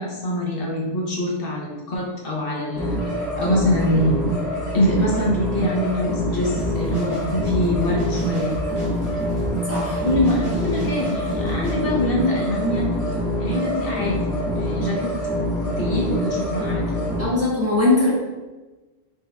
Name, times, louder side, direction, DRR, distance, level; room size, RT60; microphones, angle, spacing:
voice 1, 0.0-3.0 3.4-4.2 4.7-8.6 10.0-12.9 13.4-15.1 15.8-16.9, left 1 dB, 65° left, -2 dB, 0.9 m, -24 dB
sound 1, 2.7-17.2, equal, 20° left, 0.9 m, -25 dB
sound 2, 6.6-11.7, equal, 85° right, 1.6 m, -32 dB
voice 2, 9.7-10.0 17.2-18.1, left 2 dB, 15° right, -9 dB, 1.1 m, -20 dB
4.5 x 3.2 x 2.3 m, 1.2 s
omnidirectional pair, 1.1 m